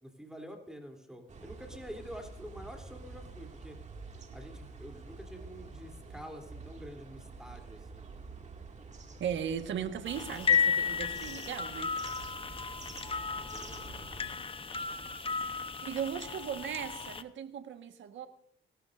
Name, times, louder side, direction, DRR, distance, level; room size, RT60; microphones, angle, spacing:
voice 1, 0.2-3.8 4.3-8.1 13.4-13.9, equal, 5° right, 3.3 m, -47 dB
sound 1, 1.3-14.3, right 4 dB, 35° right, 2.3 m, -48 dB
voice 2, 9.2-11.9 15.8-18.3, right 8 dB, 70° right, 1.5 m, -37 dB
sound 2, 10.1-17.2, left 6 dB, 25° left, 1.0 m, -33 dB
27.0 x 13.5 x 2.6 m
cardioid pair, 90°, 20 cm